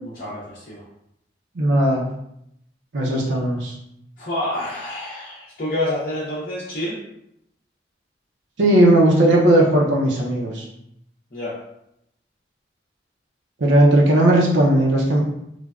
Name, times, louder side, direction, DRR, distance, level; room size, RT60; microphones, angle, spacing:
voice 1, 0.2-0.8 4.2-7.0 11.3-11.6, left 1 dB, 45° left, -8 dB, 0.6 m, -28 dB
voice 2, 1.6-2.0 2.9-3.8 8.6-10.7 13.6-15.2, right 1 dB, 75° right, -3 dB, 0.5 m, -16 dB
3.2 x 2.1 x 2.3 m, 0.79 s
head